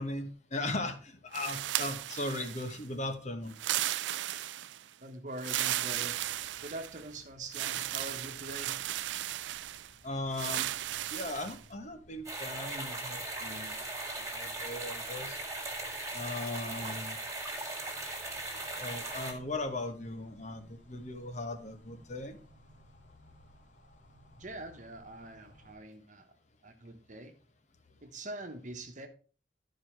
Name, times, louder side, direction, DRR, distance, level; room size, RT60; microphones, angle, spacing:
voice 1, 0.0-3.5 10.0-10.7 11.1-13.8 14.2-15.4 16.1-17.2 18.8-22.4, left 2 dB, 40° left, 7 dB, 1.1 m, -38 dB
sound 1, 1.3-2.8 3.5-4.8 5.4-7.1 7.5-9.9 10.3-11.6, right 14 dB, 75° right, 0.4 m, -35 dB
voice 2, 5.0-6.2 6.6-8.8 24.4-26.3 26.6-27.3 28.0-29.1, right 1 dB, 45° right, 6 dB, 1.2 m, -44 dB
sound 2, 5.8-25.7, equal, 75° left, 2.0 m, -60 dB
sound 3, 12.2-19.3, right 2 dB, 15° right, 1.9 m, -38 dB
12.0 x 4.8 x 4.6 m, 0.38 s
head